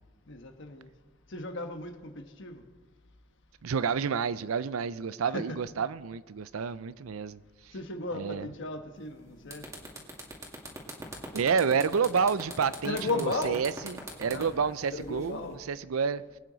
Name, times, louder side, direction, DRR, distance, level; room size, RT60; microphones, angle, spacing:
voice 1, 0.3-0.9 1.3-2.6 5.2-5.6 7.7-9.6 12.8-13.7 14.3-15.6, left 2 dB, 60° left, 1.2 m, -35 dB
voice 2, 3.6-7.4 8.1-8.5 11.3-15.4 15.7-16.2, right 6 dB, 85° right, 0.5 m, -29 dB
sound 1, 9.0-9.1 9.4-15.5, right 2 dB, 15° right, 2.1 m, -42 dB
23.0 x 9.3 x 4.0 m
head